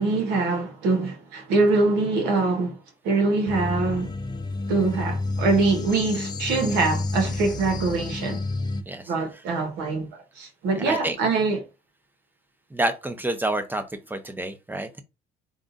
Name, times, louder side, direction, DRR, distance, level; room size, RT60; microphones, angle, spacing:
voice 1, 0.0-2.8 3.0-4.1 4.7-8.4 9.1-11.6, right 3 dB, 90° right, 1.3 m, -24 dB
sound 1, 3.5-8.8, left 2 dB, 25° left, 0.5 m, -30 dB
voice 2, 10.8-11.2 12.7-15.0, right 1 dB, 10° right, 0.7 m, -28 dB
3.7 x 2.4 x 3.9 m
cardioid pair, 110°, 17 cm